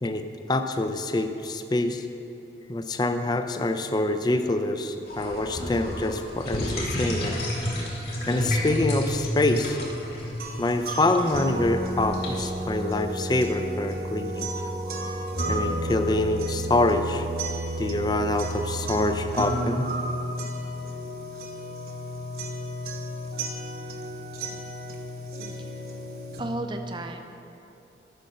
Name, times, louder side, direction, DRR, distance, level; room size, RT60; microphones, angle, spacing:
voice 1, 0.0-2.1 2.7-7.4 8.3-9.8 10.6-14.5 15.5-17.3 17.8-19.9, left 2 dB, 25° left, 8 dB, 0.4 m, -26 dB
sound 1, 5.1-12.6, left 1 dB, 60° left, 2.6 m, -31 dB
sound 2, 10.4-26.4, right 1 dB, 60° right, 1.1 m, -32 dB
voice 2, 26.4-27.6, right 1 dB, 25° right, 5 dB, 0.6 m, -35 dB
11.5 x 6.4 x 5.5 m, 2.9 s
head